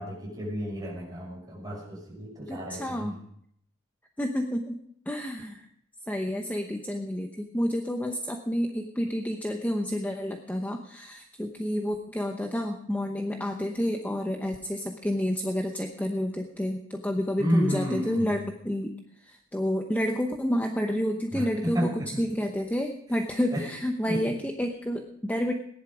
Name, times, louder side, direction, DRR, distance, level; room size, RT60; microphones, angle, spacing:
voice 1, 0.0-3.1 17.4-18.4 21.3-22.2 23.5-23.6 24.1-24.3, equal, 20° right, -3 dB, 6.1 m, -31 dB
voice 2, 2.5-3.2 4.2-4.8 5.1-5.7 6.1-18.9 19.2-25.5, equal, 10° left, 3 dB, 0.9 m, -29 dB
17.5 x 11.0 x 5.0 m, 0.70 s
head